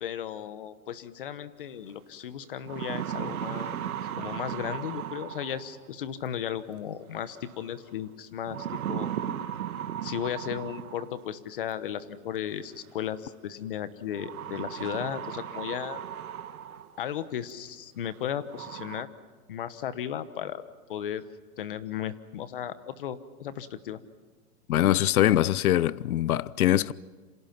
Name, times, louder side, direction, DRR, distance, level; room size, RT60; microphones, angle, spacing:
voice 1, 0.0-3.8 4.2-9.5 10.0-16.0 17.0-19.1 19.5-20.6 20.9-21.3 21.6-24.0, left 9 dB, 35° left, 1.0 m, -35 dB
sound 1, 1.9-2.0 2.4-5.9 7.3-7.7 8.5-11.3 12.5-12.6 14.1-17.0 17.5-17.6 18.1-18.2 18.5-19.0, right 10 dB, 70° right, 1.7 m, -36 dB
voice 2, 24.7-26.9, left 12 dB, 70° left, 0.7 m, -23 dB
28.5 x 26.5 x 5.8 m
hypercardioid pair, 175°, 44 cm